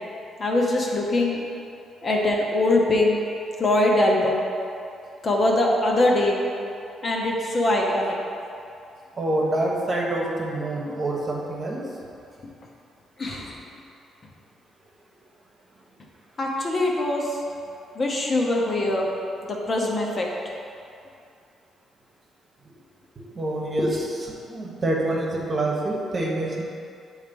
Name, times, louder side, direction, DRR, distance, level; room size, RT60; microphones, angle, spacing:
voice 1, 0.4-1.4 2.0-3.2 3.6-4.4 5.2-6.4 7.0-8.2 13.2-13.6 16.4-17.4 17.9-19.1 19.4-20.3, left 1 dB, 40° left, -2 dB, 1.0 m, -22 dB
voice 2, 9.2-11.8 23.3-26.6, right 1 dB, 35° right, -2 dB, 1.2 m, -26 dB
7.1 x 3.2 x 5.3 m, 2.6 s
cardioid pair, 90°, 0 cm